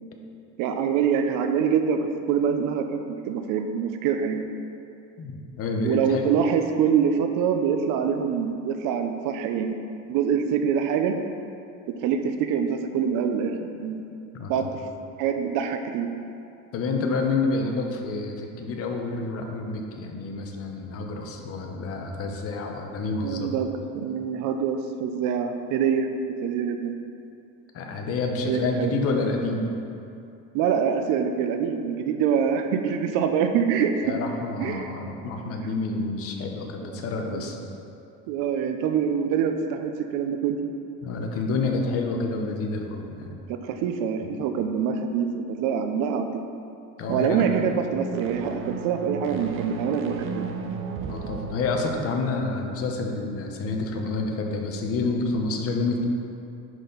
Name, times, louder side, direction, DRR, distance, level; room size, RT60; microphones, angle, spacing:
voice 1, 0.6-4.5 5.8-9.7 10.1-11.2 11.9-14.0 14.5-14.8 15.2-16.1 23.2-23.7 23.9-26.1 26.4-26.9 28.4-28.9 30.5-34.1 34.6-34.9 36.8-37.5 38.3-40.6 43.5-46.4 47.1-50.5, right 7 dB, 80° right, 7 dB, 0.7 m, -25 dB
voice 2, 5.2-6.2 14.3-14.7 16.7-23.5 27.7-29.7 34.0-37.6 41.0-43.3 47.0-47.4 51.1-56.1, left 3 dB, 45° left, 2 dB, 0.9 m, -28 dB
sound 1, 47.0-52.6, right 5 dB, 40° right, 0.6 m, -35 dB
10.5 x 4.3 x 4.0 m, 2.6 s
cardioid pair, 165°, 32 cm